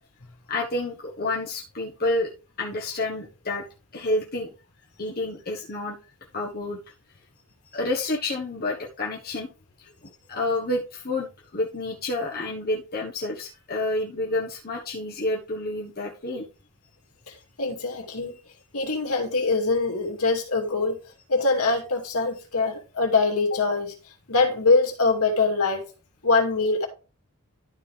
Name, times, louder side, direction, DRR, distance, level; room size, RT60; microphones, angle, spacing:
voice 1, 0.5-2.3 2.6-3.7 3.9-4.5 5.0-6.0 6.3-6.8 7.7-9.5 9.8-16.4, left 2 dB, 45° left, 1.4 m, -29 dB
voice 2, 17.3-18.3 18.7-21.0 21.3-23.9 24.3-25.9 26.2-26.9, left 3 dB, 75° left, 2.5 m, -23 dB
12.5 x 5.3 x 3.5 m
head